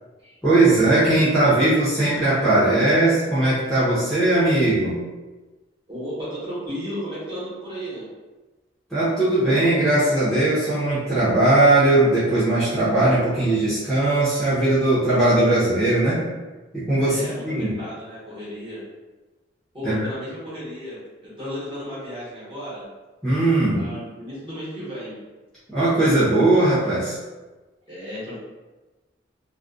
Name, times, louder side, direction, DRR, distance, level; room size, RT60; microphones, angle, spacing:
voice 1, 0.4-5.0 8.9-16.2 16.7-17.7 19.8-20.0 23.2-23.9 25.7-27.2, right 2 dB, 5° left, -12 dB, 0.7 m, -19 dB
voice 2, 5.9-8.1 17.1-18.8 19.7-22.9 23.7-25.2 27.9-28.4, equal, 25° right, -10 dB, 1.1 m, -34 dB
2.4 x 2.2 x 2.5 m, 1.2 s
head